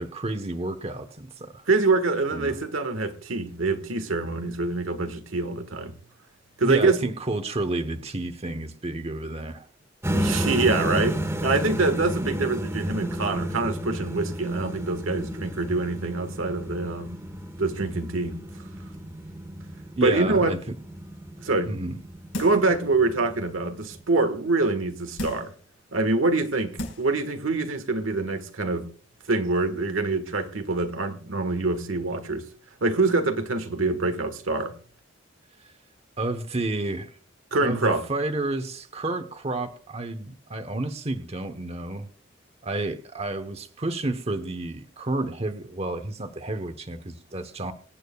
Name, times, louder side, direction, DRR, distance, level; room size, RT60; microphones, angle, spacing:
voice 1, 0.0-1.6 2.3-2.6 6.6-9.7 20.0-20.6 21.7-22.0 36.2-37.1 37.5-42.1 42.6-47.7, right 2 dB, 30° right, 1.0 m, -30 dB
voice 2, 1.7-5.9 6.6-7.0 10.1-17.1 17.6-18.4 20.0-20.5 21.4-21.7 22.4-25.5 25.9-28.9 29.3-32.4 32.8-34.7 37.5-38.0, right 3 dB, 90° right, 1.6 m, -25 dB
sound 1, 10.0-24.0, equal, 15° right, 1.5 m, -32 dB
sound 2, 22.3-22.8 23.3-23.4 25.2-25.6 26.3-26.4 26.8-27.2 27.6-27.7, left 1 dB, 75° left, 4.8 m, -34 dB
25.5 x 8.9 x 2.3 m
head